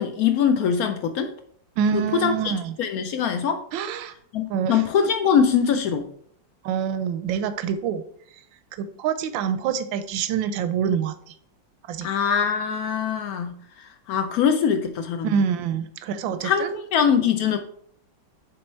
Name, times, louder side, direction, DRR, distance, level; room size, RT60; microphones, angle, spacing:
voice 1, 0.0-1.3 1.9-2.5 2.8-3.6 4.3-6.1 12.0-15.3 16.4-17.6, left 7 dB, 75° left, 0.8 m, -23 dB
voice 2, 1.8-2.7 3.7-4.1 4.5-4.8 6.6-8.0 8.8-11.3 11.9-12.1 15.2-16.7, right 7 dB, 85° right, 1.3 m, -26 dB
6.8 x 3.5 x 4.4 m
omnidirectional pair, 2.0 m